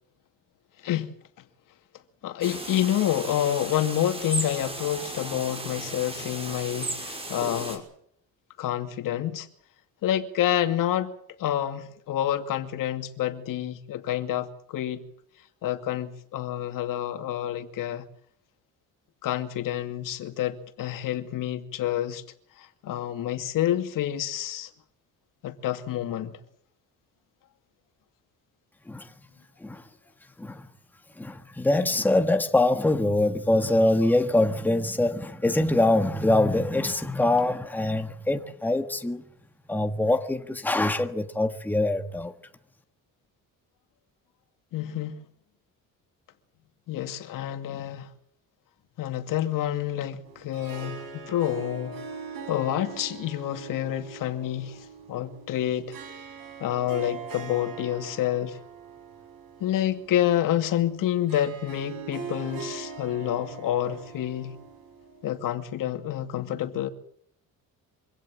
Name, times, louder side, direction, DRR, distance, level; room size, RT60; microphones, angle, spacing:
voice 1, 2.2-7.8 8.6-9.5 10.0-11.1 11.4-15.0 15.6-18.1 19.2-22.2 22.6-24.7 25.4-26.4 44.7-45.2 46.9-48.1 49.0-52.0 52.5-56.0 56.6-58.6 59.6-64.6 65.2-66.9, left 11 dB, 70° left, 2.5 m, -28 dB
sound 1, 2.4-7.8, right 2 dB, 15° right, 5.4 m, -35 dB
voice 2, 31.2-39.2 39.7-42.3, left 2 dB, 5° left, 1.5 m, -24 dB
Harp, 50.2-65.5, right 5 dB, 80° right, 6.4 m, -42 dB
25.0 x 17.0 x 7.7 m
cardioid pair, 140°, 34 cm